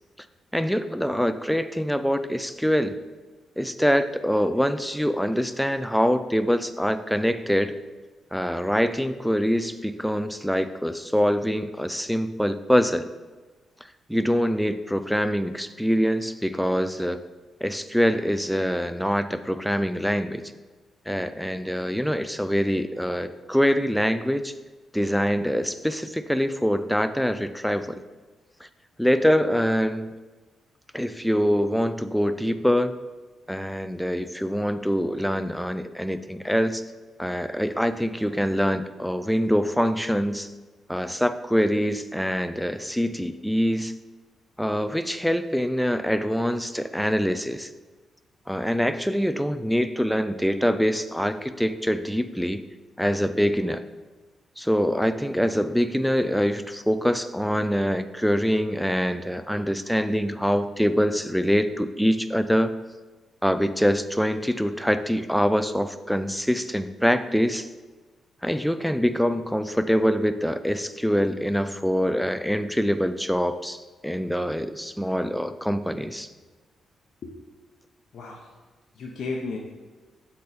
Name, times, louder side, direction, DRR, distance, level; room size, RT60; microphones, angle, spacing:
voice 1, 0.5-3.0 3.6-7.7 8.3-13.1 14.1-17.2 17.6-20.5 21.1-24.5 24.9-28.0 28.6-28.7 29.0-30.1 30.9-33.0 33.5-36.8 37.2-40.5 40.9-43.9 44.6-47.7 48.5-52.6 53.0-53.8 54.6-62.8 63.4-67.7 68.4-76.3, equal, ahead, 11 dB, 0.4 m, -24 dB
voice 2, 78.1-78.5 78.9-79.6, left 3 dB, 65° left, -1 dB, 0.8 m, -33 dB
7.5 x 4.2 x 4.1 m, 1.3 s
cardioid pair, 70°, 0 cm